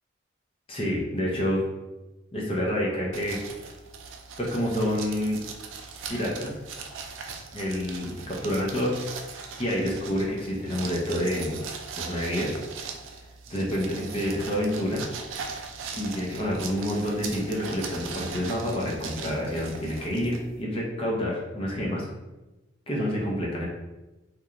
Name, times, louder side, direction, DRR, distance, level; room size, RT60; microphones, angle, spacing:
voice 1, 0.7-1.6 2.3-3.4 4.4-5.4 6.1-6.5 7.5-9.0 9.3-11.6 12.0-12.5 13.5-15.0 16.0-22.1 22.9-23.7, equal, 30° left, -3 dB, 0.5 m, -28 dB
sound 1, 3.1-20.6, right 5 dB, 65° right, 0.3 m, -40 dB
2.9 x 2.2 x 2.4 m, 1.1 s
head